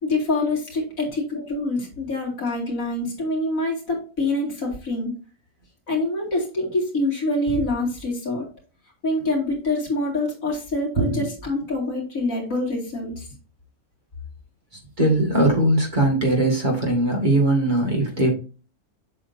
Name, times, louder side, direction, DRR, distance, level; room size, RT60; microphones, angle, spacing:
voice 1, 0.0-5.1 5.9-8.5 9.0-13.3, left 2 dB, 65° left, -2 dB, 2.8 m, -25 dB
voice 2, 15.0-18.3, right 1 dB, 30° right, 0 dB, 1.8 m, -20 dB
7.6 x 6.3 x 2.6 m, 0.36 s
omnidirectional pair, 1.6 m